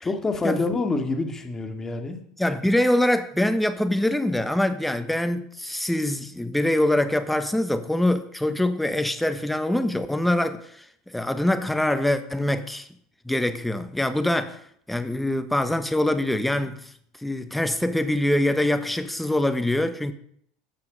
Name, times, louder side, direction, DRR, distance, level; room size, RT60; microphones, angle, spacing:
voice 1, 0.0-2.2, left 3 dB, 20° left, 2.1 m, -27 dB
voice 2, 2.4-12.9 13.2-14.6 14.9-16.9 17.2-20.1, left 1 dB, 5° left, 1.2 m, -24 dB
15.5 x 5.6 x 5.4 m
hypercardioid pair, 90°, 2 cm